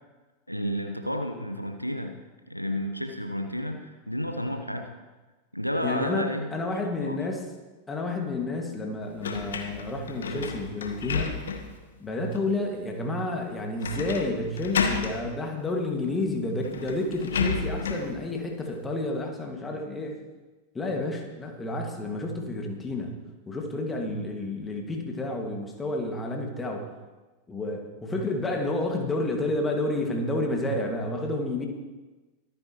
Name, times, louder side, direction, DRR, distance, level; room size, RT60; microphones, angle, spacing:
voice 1, 0.5-2.1 2.5-4.9 5.5-6.6 7.0-7.2, equal, 90° left, 5 dB, 1.1 m, -31 dB
voice 2, 5.8-7.5 7.9-11.3 12.0-20.2 20.7-23.1 23.5-26.9 27.5-31.7, left 2 dB, 15° left, 2 dB, 2.1 m, -30 dB
sound 1, 9.2-11.8 12.3-12.4 13.8-14.3 14.6-15.2 16.2-16.3 16.6-18.1, left 5 dB, 65° left, 1.4 m, -31 dB
23.5 x 9.6 x 3.1 m, 1.2 s
figure-of-eight pair, 90°, 0 cm